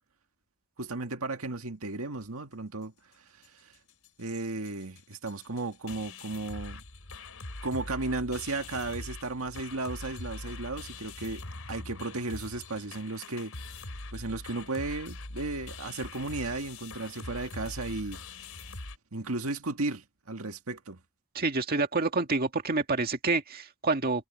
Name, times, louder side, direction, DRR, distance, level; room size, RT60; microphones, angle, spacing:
voice 1, 0.8-3.7 4.2-6.8 7.6-13.9 14.1-18.2 19.1-21.0, right 2 dB, 75° right, 1.9 m, -35 dB
sound 1, 3.4-3.5 3.7-4.1 4.3-4.4 4.6-19.0, left 2 dB, 80° left, 4.1 m, -43 dB
voice 2, 21.3-24.3, right 3 dB, 45° right, 2.0 m, -28 dB
head